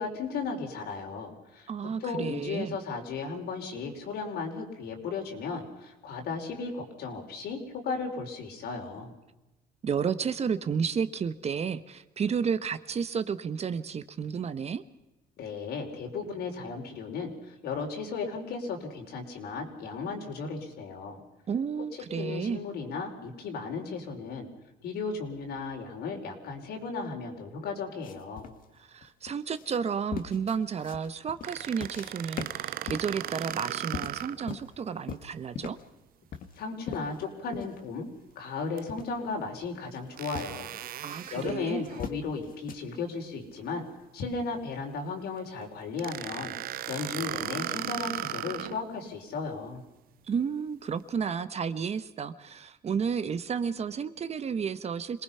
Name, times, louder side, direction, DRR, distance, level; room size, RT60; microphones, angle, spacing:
voice 1, 0.0-9.1 15.4-21.2 22.2-24.5 24.8-28.5 36.6-38.1 38.3-40.7 41.3-43.8 44.1-46.5 46.9-49.8, left 4 dB, 70° left, 2 dB, 4.7 m, -35 dB
voice 2, 1.7-2.8 9.8-14.8 21.5-22.6 28.7-35.8 41.0-41.9 50.3-55.2, right 6 dB, 40° right, 12 dB, 1.1 m, -32 dB
sound 1, 28.0-32.1 32.4-34.8 35.1-35.9 36.3-37.8 38.2-38.3 38.9-39.1 39.7-40.0 40.4-40.6 41.1-42.7, left 7 dB, 55° left, 1.8 m, -41 dB
sound 2, 31.4-34.5 35.0-35.1 38.8-38.9 40.2-42.1 46.0-48.8, right 12 dB, 60° right, 0.7 m, -37 dB
26.5 x 19.5 x 5.7 m, 0.98 s
cardioid pair, 110°, 17 cm